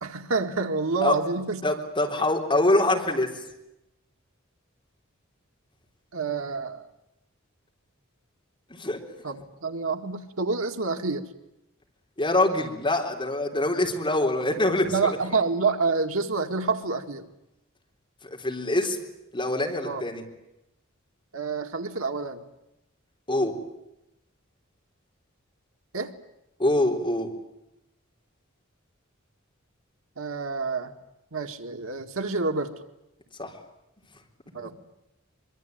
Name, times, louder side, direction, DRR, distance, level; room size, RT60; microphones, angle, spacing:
voice 1, 0.0-1.6 6.1-6.9 9.2-11.3 14.9-17.3 19.8-20.0 21.3-22.4 25.9-26.1 30.2-30.9 31.3-32.8 34.5-34.7, right 4 dB, 90° right, 5 dB, 2.1 m, -28 dB
voice 2, 1.6-3.3 8.7-9.0 12.2-15.2 18.3-19.0 19.3-20.2 23.3-23.6 26.6-27.3 33.4-33.5, left 1 dB, 25° left, 1 dB, 3.9 m, -24 dB
24.0 x 23.5 x 9.3 m, 0.89 s
head